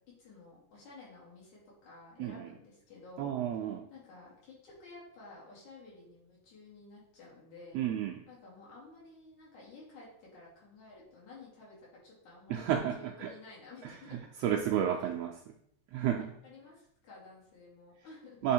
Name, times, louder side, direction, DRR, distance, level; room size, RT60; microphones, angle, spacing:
voice 1, 0.2-3.3 3.9-7.8 8.3-14.2 15.0-15.1 15.9-16.1 16.4-18.5, left 3 dB, 75° left, -5 dB, 3.8 m, -53 dB
voice 2, 3.2-3.9 7.7-8.2 12.5-13.3 13.8-15.5 15.9-16.3 18.4-18.5, right 10 dB, 80° right, 1 dB, 1.5 m, -32 dB
8.5 x 3.6 x 4.3 m, 0.74 s
omnidirectional pair, 3.4 m